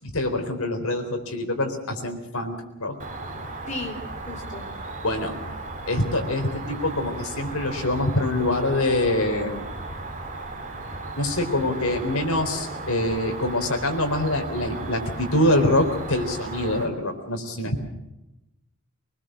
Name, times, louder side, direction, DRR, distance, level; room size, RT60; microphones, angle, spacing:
voice 1, 0.0-3.5 5.0-5.4 5.9-9.5 11.2-17.8, left 1 dB, 80° left, 5 dB, 4.0 m, -25 dB
Cricket, 3.0-16.9, right 2 dB, 35° right, 2.8 m, -36 dB
voice 2, 3.7-4.7, left 2 dB, 35° left, 1 dB, 3.7 m, -35 dB
24.0 x 20.5 x 6.4 m, 0.95 s
head